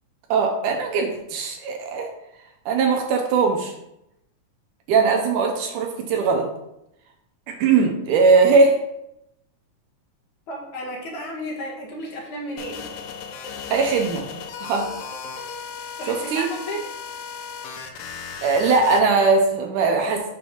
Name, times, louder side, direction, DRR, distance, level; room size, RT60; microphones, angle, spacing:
voice 1, 0.3-2.1 2.7-3.7 4.9-6.5 7.5-8.8 13.7-14.3 14.6-14.9 16.1-16.5 18.4-20.3, right 4 dB, 75° right, 3 dB, 2.0 m, -20 dB
voice 2, 10.5-12.8 16.0-16.8, equal, 70° left, -1 dB, 2.2 m, -33 dB
sound 1, 12.6-19.0, left 6 dB, 85° left, 2.5 m, -35 dB
6.2 x 3.1 x 5.6 m, 0.83 s
omnidirectional pair, 3.9 m